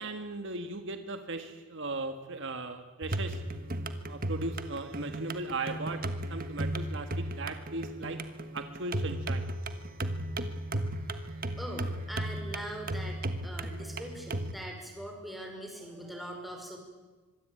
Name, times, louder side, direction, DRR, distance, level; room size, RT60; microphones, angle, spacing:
voice 1, 0.0-3.4 4.1-6.0 6.3-8.2 8.5-9.5, right 2 dB, 55° right, 7 dB, 1.6 m, -37 dB
sound 1, 3.0-14.5, right 1 dB, 40° right, 1.4 m, -35 dB
voice 2, 11.6-16.8, equal, ahead, 1 dB, 5.4 m, -42 dB
25.5 x 21.5 x 9.0 m, 1.3 s
head